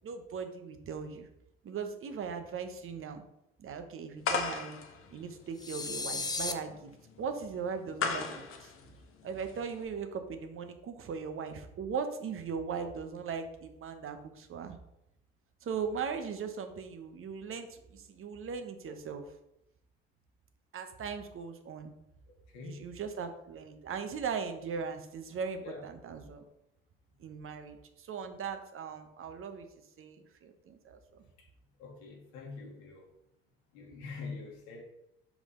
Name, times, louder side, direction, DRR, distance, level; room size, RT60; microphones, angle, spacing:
voice 1, 0.0-1.3 1.6-3.2 3.6-4.8 5.1-6.9 7.2-8.3 8.6-8.7 9.2-14.8 15.6-19.2 20.7-21.9 22.6-26.4 27.2-29.7 30.0-31.2, right 6 dB, 45° right, 7 dB, 0.9 m, -39 dB
sound 1, 4.2-9.9, left 5 dB, 45° left, 1.0 m, -37 dB
sound 2, 5.6-6.5, left 3 dB, 15° left, 0.6 m, -35 dB
voice 2, 22.5-22.8 25.6-25.9 31.4-31.5 31.8-33.1 33.7-34.8, left 4 dB, 75° left, 1 dB, 1.7 m, -44 dB
5.3 x 4.9 x 3.8 m, 0.83 s
hypercardioid pair, 65°, 29 cm